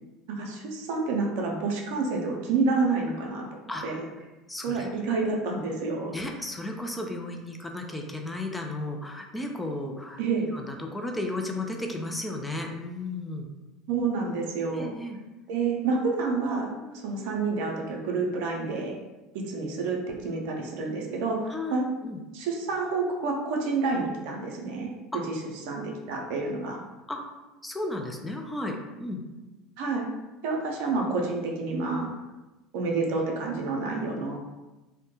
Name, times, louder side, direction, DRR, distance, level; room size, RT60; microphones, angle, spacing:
voice 1, 0.3-4.1 4.6-6.1 10.2-10.5 13.9-14.9 15.5-19.0 19.3-21.8 22.3-24.9 25.7-26.8 29.8-30.1 30.4-32.1 32.7-34.4, right 4 dB, 70° right, 0 dB, 0.5 m, -29 dB
voice 2, 3.7-4.0 4.5-4.9 6.1-10.2 10.5-13.5 14.7-15.2 16.8-17.0 21.5-22.2 25.1-25.2 27.1-27.2 27.6-29.2, left 2 dB, 10° left, 2 dB, 0.4 m, -34 dB
2.1 x 2.1 x 2.9 m, 1.1 s
hypercardioid pair, 80°, 0 cm